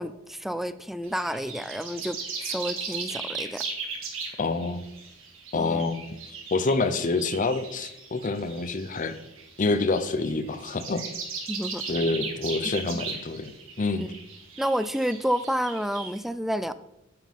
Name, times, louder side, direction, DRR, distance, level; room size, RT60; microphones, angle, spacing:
voice 1, 0.0-3.6 5.5-5.8 11.5-11.8 12.6-13.0 14.0-14.1 14.6-16.7, equal, ahead, 13 dB, 0.3 m, -30 dB
sound 1, 1.0-16.2, right 4 dB, 80° right, 1.8 m, -38 dB
voice 2, 4.4-4.9 5.5-6.0 6.5-9.2 9.6-11.0 11.9-13.5 13.8-14.1, left 3 dB, 40° left, 11 dB, 0.6 m, -27 dB
9.1 x 7.5 x 3.6 m, 0.86 s
head